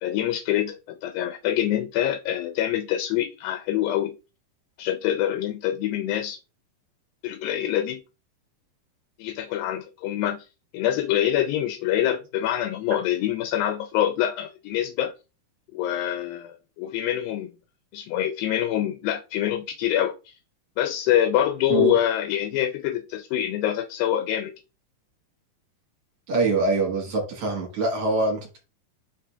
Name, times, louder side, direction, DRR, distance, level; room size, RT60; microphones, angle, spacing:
voice 1, 0.0-4.1 4.8-6.4 7.2-8.0 9.2-10.5 10.7-15.1 15.7-17.5 17.9-20.3 20.8-24.5, left 11 dB, 85° left, 2.3 m, -25 dB
voice 2, 26.3-28.6, right 3 dB, 60° right, 1.6 m, -24 dB
4.9 x 4.3 x 2.3 m
omnidirectional pair, 4.2 m